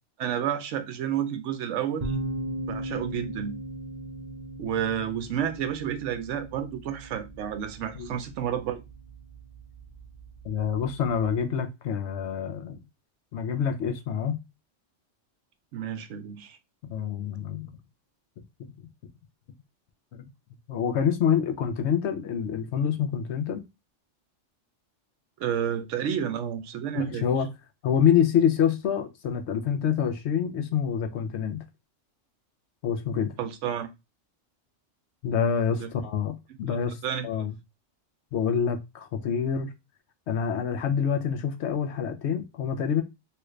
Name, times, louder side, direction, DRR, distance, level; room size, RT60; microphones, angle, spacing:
voice 1, 0.2-2.1 2.7-3.6 4.6-8.8 15.7-16.6 25.4-27.3 33.4-33.9 35.8-35.9 36.7-36.8 37.0-37.3, right 9 dB, 75° right, 0.9 m, -30 dB
sound 1, 2.0-11.4, right 1 dB, 40° right, 0.6 m, -38 dB
voice 2, 10.4-12.8 13.3-14.4 16.9-17.7 20.1-20.3 20.7-23.6 26.9-27.5 27.8-31.6 32.8-33.3 35.2-37.0 37.2-37.5 38.3-39.7 40.3-43.0, left 7 dB, 70° left, 0.8 m, -26 dB
3.1 x 2.4 x 3.1 m
omnidirectional pair, 1.3 m